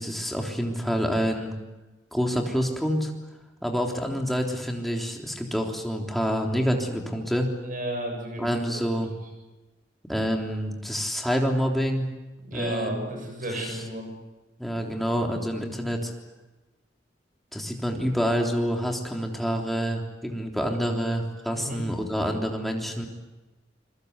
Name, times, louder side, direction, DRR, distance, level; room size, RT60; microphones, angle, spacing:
voice 1, 0.0-1.5 2.1-3.1 3.6-7.5 8.4-9.1 10.0-12.1 12.5-12.9 13.5-13.6 14.6-16.1 17.5-23.1, equal, ahead, 1 dB, 3.5 m, -27 dB
voice 2, 7.6-8.4 12.4-14.1 21.5-21.8, right 1 dB, 50° right, 3 dB, 7.6 m, -32 dB
27.5 x 22.5 x 8.2 m, 1.1 s
head